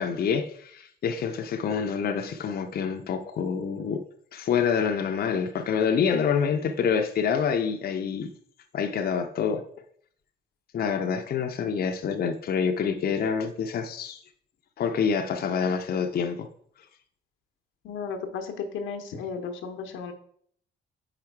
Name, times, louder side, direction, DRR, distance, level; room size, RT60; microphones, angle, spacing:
voice 1, 0.0-4.0 4.3-8.3 8.7-9.6 10.7-14.2 14.8-16.5, left 6 dB, 50° left, 4 dB, 0.6 m, -27 dB
voice 2, 17.8-20.1, left 5 dB, 85° left, 5 dB, 0.9 m, -34 dB
4.9 x 4.9 x 4.5 m, 0.62 s
cardioid pair, 90°, 20 cm